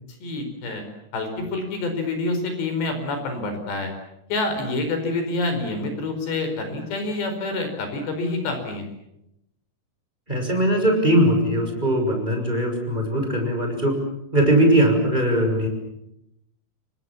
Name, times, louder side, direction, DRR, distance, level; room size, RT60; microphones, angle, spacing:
voice 1, 0.2-0.8 1.1-3.9 4.3-8.9, left 2 dB, 75° left, 7 dB, 7.0 m, -27 dB
voice 2, 10.3-14.0 14.3-15.7, right 1 dB, 10° right, 3 dB, 6.2 m, -20 dB
30.0 x 25.0 x 7.4 m, 0.82 s
omnidirectional pair, 5.0 m